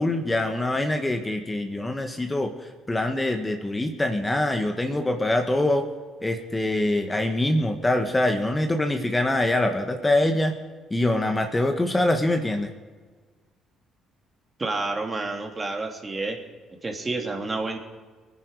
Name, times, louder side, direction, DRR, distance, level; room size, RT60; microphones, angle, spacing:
voice 1, 0.0-5.9 6.2-10.5 10.9-12.7, left 1 dB, 20° left, 5 dB, 1.7 m, -24 dB
voice 2, 14.6-16.4 16.8-17.8, right 3 dB, 30° right, 3 dB, 2.8 m, -29 dB
22.5 x 9.8 x 4.9 m, 1.4 s
hypercardioid pair, 55°, 0 cm